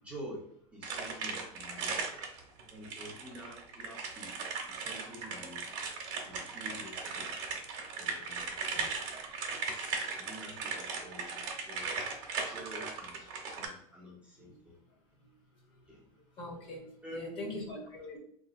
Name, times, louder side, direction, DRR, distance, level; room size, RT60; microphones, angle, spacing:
voice 1, 0.0-2.1 2.7-5.6 6.2-7.4 8.0-8.5 9.7-11.9 12.4-14.8 15.9-16.0 17.0-17.6, equal, 5° right, -6 dB, 0.5 m, -48 dB
sound 1, 0.8-13.7, right 4 dB, 45° right, 0.8 m, -38 dB
voice 2, 16.4-16.9 17.1-18.2, left 1 dB, 30° left, 1 dB, 0.7 m, -42 dB
3.7 x 2.8 x 2.4 m, 0.67 s
supercardioid pair, 175°, 18 cm